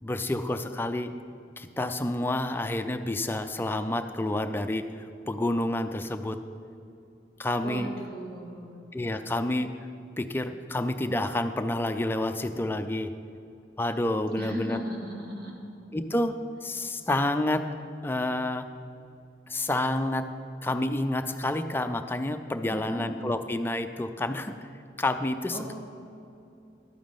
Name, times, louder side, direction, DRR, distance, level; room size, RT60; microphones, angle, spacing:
voice 1, 0.0-1.1 1.6-6.4 7.4-7.9 8.9-9.7 10.2-13.1 13.8-14.8 15.9-16.3 16.6-17.7 18.0-18.7 19.5-20.3 20.6-24.6 25.0-25.7, left 1 dB, 10° left, 8 dB, 0.4 m, -29 dB
voice 2, 7.6-8.7 14.4-15.6 22.7-23.0 25.5-25.7, right 1 dB, 60° right, -3 dB, 1.9 m, -37 dB
12.0 x 9.1 x 3.6 m, 2.6 s
head